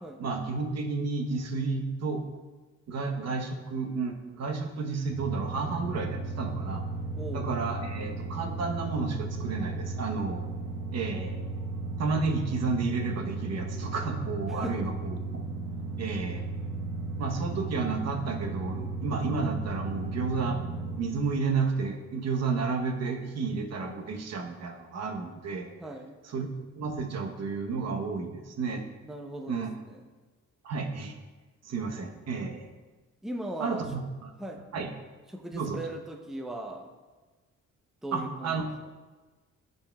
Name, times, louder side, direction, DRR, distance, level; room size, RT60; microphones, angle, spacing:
voice 1, 0.2-2.2 2.9-6.8 7.3-10.4 10.9-11.4 12.0-15.2 16.0-16.5 17.2-20.6 21.0-25.7 26.2-26.5 26.8-28.8 29.5-29.7 30.6-31.2 31.6-32.7 33.6-34.3 34.7-34.9 35.5-35.8 38.1-38.7, right 4 dB, 60° right, 3 dB, 0.9 m, -31 dB
sound 1, 5.1-21.2, right 3 dB, 90° right, 0.8 m, -35 dB
voice 2, 7.2-7.5 14.5-14.9 25.8-26.1 29.1-30.0 33.2-33.9 34.4-34.6 35.3-36.9 38.0-38.6, right 1 dB, ahead, 3 dB, 0.6 m, -38 dB
10.0 x 5.5 x 2.3 m, 1.3 s
cardioid pair, 90°, 30 cm